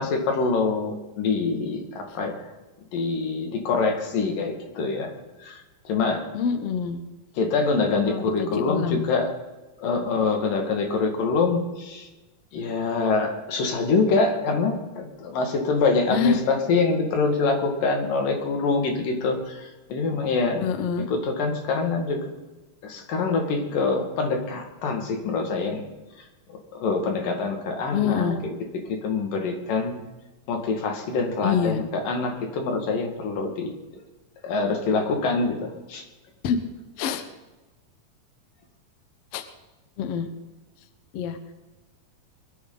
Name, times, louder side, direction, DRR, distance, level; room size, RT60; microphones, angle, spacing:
voice 1, 0.0-2.4 2.9-5.1 5.4-6.2 7.4-9.3 9.8-12.1 12.5-20.7 21.1-22.3 22.8-25.9 26.5-28.5 28.9-30.0 30.5-33.7 34.4-36.0, left 4 dB, 80° left, 3 dB, 3.7 m, -25 dB
voice 2, 6.3-7.0 8.1-9.1 16.1-16.4 20.6-21.1 27.9-28.4 31.4-31.8 36.4-36.6 37.0-37.2 39.3-39.5 40.0-40.3 41.1-41.4, left 6 dB, 60° left, 9 dB, 1.8 m, -25 dB
21.5 x 12.5 x 4.0 m, 1.1 s
omnidirectional pair, 3.8 m